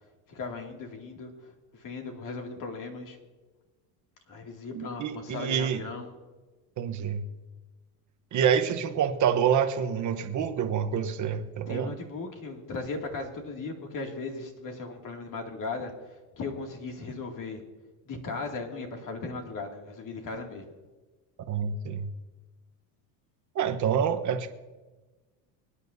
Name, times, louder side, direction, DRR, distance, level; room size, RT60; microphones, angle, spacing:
voice 1, 0.3-3.2 4.3-6.1 11.7-15.9 16.4-17.6 18.0-20.6, left 3 dB, 45° left, 2 dB, 2.5 m, -37 dB
voice 2, 4.7-5.8 6.8-7.2 8.3-11.9 21.5-22.1 23.5-24.5, right 8 dB, 40° right, 7 dB, 1.1 m, -27 dB
24.5 x 10.0 x 2.7 m, 1.2 s
supercardioid pair, 115°, 45 cm